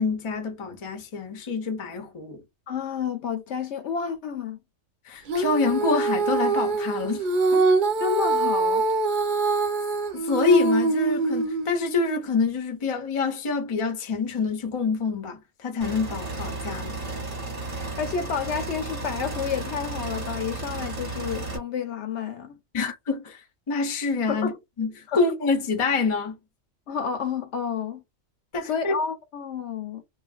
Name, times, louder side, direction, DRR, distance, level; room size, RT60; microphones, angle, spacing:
voice 1, 0.0-2.4 5.1-7.3 7.5-7.7 10.1-17.0 22.7-24.5 24.8-26.4 28.5-28.9, left 4 dB, 35° left, 0.5 m, -26 dB
voice 2, 2.7-4.6 8.0-8.9 18.0-22.6 24.3-24.6 25.1-25.2 26.9-28.0 28.6-30.0, left 6 dB, 65° left, 0.8 m, -30 dB
Female singing, 5.3-11.8, right 3 dB, 50° right, 0.6 m, -24 dB
sound 1, 15.8-21.6, right 2 dB, 35° right, 0.9 m, -33 dB
3.0 x 2.5 x 2.3 m
omnidirectional pair, 1.4 m